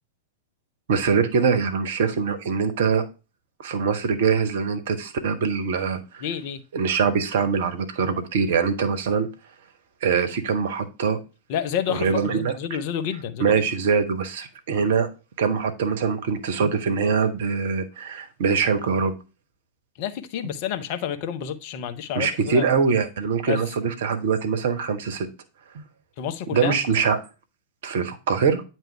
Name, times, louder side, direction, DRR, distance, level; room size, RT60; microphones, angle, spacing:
voice 1, 0.9-3.0 3.6-6.3 6.7-9.3 10.0-11.2 11.9-12.6 13.4-15.1 15.4-19.1 20.4-20.5 22.1-25.3 25.7-25.9 26.5-27.2 27.8-28.6, right 6 dB, 55° right, 0.9 m, -23 dB
voice 2, 6.2-6.6 11.5-13.6 20.0-22.6 23.5-23.6 26.2-26.7, left 9 dB, 45° left, 0.6 m, -29 dB
9.0 x 3.1 x 4.4 m
figure-of-eight pair, 90°, 0 cm